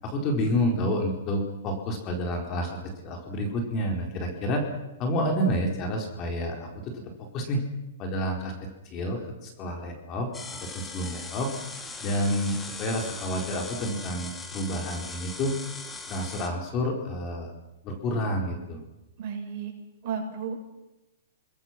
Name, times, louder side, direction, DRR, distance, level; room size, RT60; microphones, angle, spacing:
voice 1, 0.0-4.6 5.0-7.0 7.3-7.6 8.0-10.3 10.6-11.5 12.0-15.5 16.1-17.5 17.8-18.8, equal, 30° left, 2 dB, 4.4 m, -29 dB
sound 1, 10.3-16.5, left 3 dB, 15° left, 2.4 m, -40 dB
voice 2, 19.2-19.7 20.0-20.6, right 6 dB, 45° right, 0 dB, 7.3 m, -33 dB
28.5 x 21.0 x 6.1 m, 0.96 s
hypercardioid pair, 140°, 0 cm